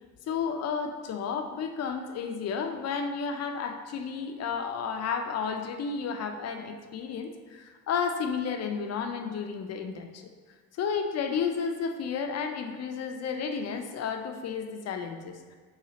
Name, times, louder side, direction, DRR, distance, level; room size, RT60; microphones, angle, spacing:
voice 1, 0.3-10.3 10.7-15.4, left 6 dB, 60° left, 6 dB, 0.5 m, -32 dB
4.0 x 2.4 x 4.0 m, 1.5 s
cardioid pair, 90°, 30 cm